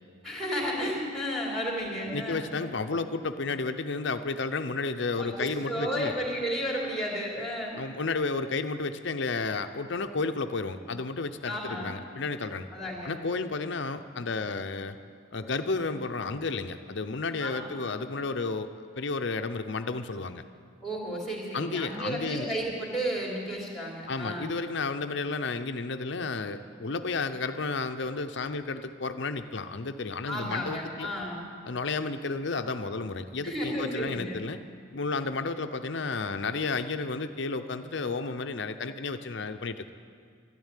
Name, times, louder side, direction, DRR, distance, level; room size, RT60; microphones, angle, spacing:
voice 1, 0.2-2.5 5.2-7.8 11.5-12.0 12.7-13.2 17.4-17.7 20.8-24.5 30.3-31.4 33.4-34.4, equal, ahead, -2 dB, 3.3 m, -33 dB
voice 2, 2.1-6.1 7.8-12.7 13.0-15.0 15.3-18.7 19.0-20.4 21.5-22.5 24.1-31.1 31.6-34.6 34.9-39.9, left 3 dB, 60° left, 9 dB, 0.7 m, -32 dB
13.0 x 12.0 x 9.1 m, 2.1 s
head